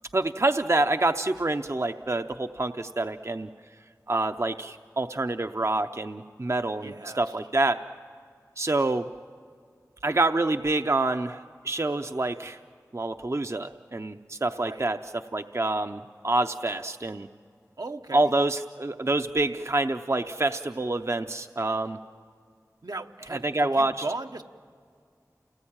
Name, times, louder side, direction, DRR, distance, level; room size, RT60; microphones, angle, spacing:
voice 1, 0.1-3.5 4.1-7.8 8.6-9.1 10.0-12.6 12.9-17.3 18.1-22.0 23.3-24.1, right 2 dB, 45° right, 7 dB, 0.6 m, -27 dB
voice 2, 6.8-7.2 14.6-14.9 17.8-18.3 22.8-24.4, right 2 dB, 80° right, 4 dB, 1.0 m, -37 dB
29.0 x 19.0 x 8.8 m, 2.2 s
wide cardioid pair, 50°, 7 cm